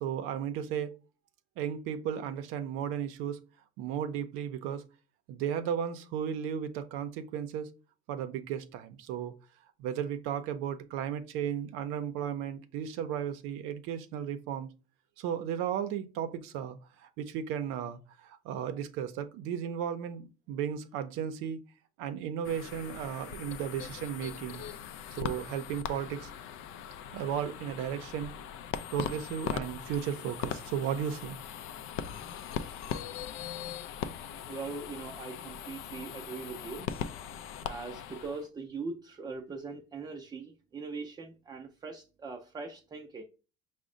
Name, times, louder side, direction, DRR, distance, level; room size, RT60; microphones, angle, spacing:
voice 1, 0.0-1.0 1.6-3.4 3.8-4.8 5.3-7.7 8.1-9.3 9.8-14.7 15.2-21.6 22.0-24.6 25.1-26.3 27.1-28.3 28.9-31.4, right 9 dB, 90° right, 0.5 m, -35 dB
sound 1, 22.4-38.5, left 8 dB, 80° left, 0.4 m, -40 dB
voice 2, 34.5-36.9 37.6-43.2, right 4 dB, 20° right, 0.4 m, -41 dB
5.0 x 2.1 x 3.7 m
cardioid pair, 130°, 21 cm